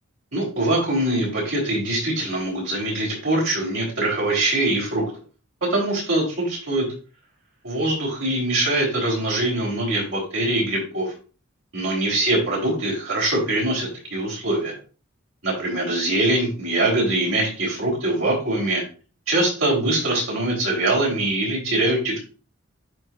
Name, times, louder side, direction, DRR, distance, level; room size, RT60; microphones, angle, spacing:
voice 1, 0.3-5.1 5.7-6.9 7.6-11.1 11.7-14.7 15.4-18.8 19.3-22.2, right 2 dB, 85° right, -3 dB, 3.9 m, -23 dB
11.0 x 4.6 x 2.6 m, 0.36 s
head